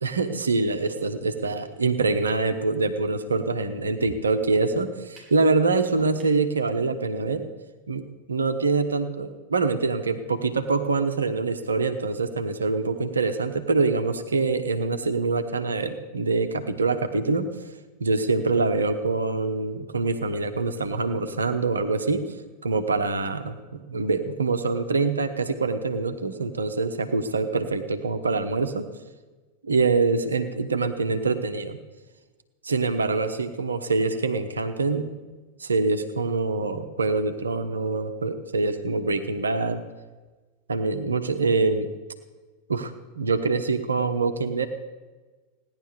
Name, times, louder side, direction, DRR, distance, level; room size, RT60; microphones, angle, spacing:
voice 1, 0.0-7.5 7.9-17.5 18.0-22.3 22.6-28.9 29.6-31.8 32.6-35.1 35.6-39.8 40.7-41.9 42.7-44.7, right 3 dB, 75° right, 8 dB, 1.0 m, -25 dB
sound 1, 5.2-5.4 6.0-6.4, right 2 dB, ahead, 4.7 m, -47 dB
16.5 x 10.5 x 6.7 m, 1.3 s
figure-of-eight pair, 90°, 0 cm